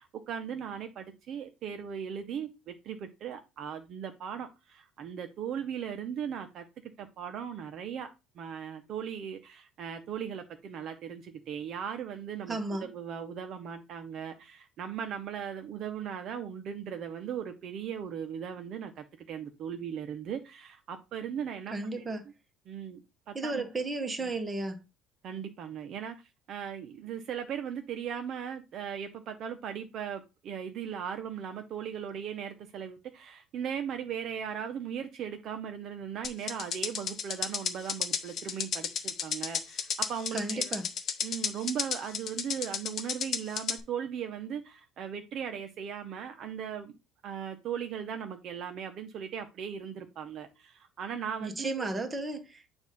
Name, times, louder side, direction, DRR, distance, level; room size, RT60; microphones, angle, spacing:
voice 1, 0.0-6.6 7.0-8.1 8.3-22.1 22.7-23.6 24.2-24.3 25.2-26.1 26.5-40.7 41.2-46.9 47.2-51.9, right 8 dB, 45° right, 0.8 m, -38 dB
voice 2, 12.5-12.9 21.7-22.2 23.3-24.8 40.3-40.8 51.4-52.7, right 2 dB, 15° right, 1.2 m, -33 dB
sound 1, 36.2-43.8, left 7 dB, 40° left, 0.8 m, -32 dB
7.1 x 2.6 x 5.4 m
cardioid pair, 145°, 0 cm